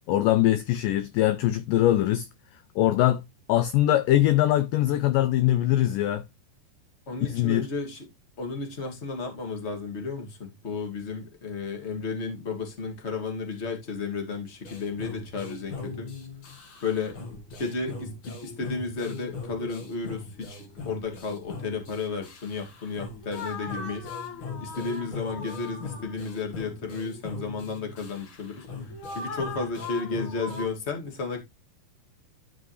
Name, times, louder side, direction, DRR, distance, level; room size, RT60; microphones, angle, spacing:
voice 1, 0.1-2.3 2.8-3.2 3.5-6.2 7.2-7.7, left 14 dB, 80° left, 2.0 m, -22 dB
voice 2, 7.1-8.1 8.4-16.1 16.8-24.1 24.6-31.4, left 4 dB, 20° left, 1.9 m, -33 dB
sound 1, 14.6-30.6, left 3 dB, 45° left, 1.9 m, -39 dB
12.5 x 5.1 x 3.2 m
omnidirectional pair, 4.4 m